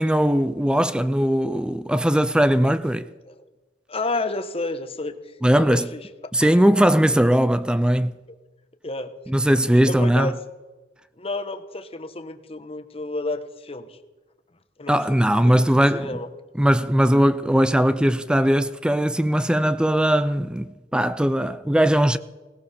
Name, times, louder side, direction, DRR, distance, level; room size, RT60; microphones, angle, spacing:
voice 1, 0.0-3.1 5.4-5.9 6.3-8.1 9.3-10.3 14.9-16.2 16.5-22.2, equal, 5° right, 0.4 m, -19 dB
voice 2, 3.9-5.1 5.5-6.0 6.4-6.6 7.3-7.4 8.8-9.1 9.9-10.4 11.2-14.0 14.8-16.3, left 2 dB, 35° left, 1.1 m, -31 dB
18.0 x 17.5 x 4.3 m
head